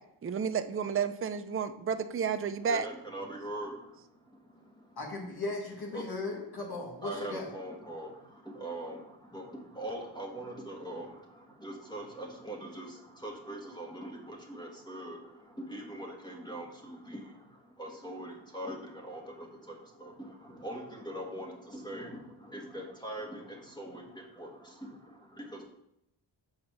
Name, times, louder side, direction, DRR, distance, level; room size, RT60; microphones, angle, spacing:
voice 1, 0.2-2.9, right 6 dB, 30° right, 0.5 m, -31 dB
voice 2, 2.7-5.0 5.9-6.0 7.0-25.7, right 1 dB, 10° left, 1.5 m, -42 dB
voice 3, 5.0-7.5, left 2 dB, 55° left, 1.8 m, -37 dB
7.2 x 5.1 x 5.9 m
wide cardioid pair, 120°, 45 cm